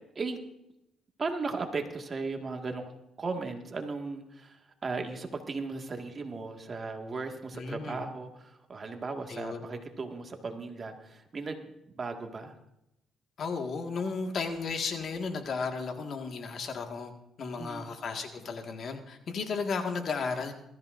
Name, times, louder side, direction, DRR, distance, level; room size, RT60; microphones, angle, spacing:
voice 1, 1.2-2.9 3.2-12.6 17.6-17.9, right 3 dB, 40° right, 4 dB, 1.9 m, -36 dB
voice 2, 7.5-8.0 9.3-9.7 13.4-20.5, left 4 dB, 55° left, 4 dB, 1.8 m, -34 dB
21.0 x 14.0 x 2.6 m, 0.85 s
cardioid pair, 90°, 0 cm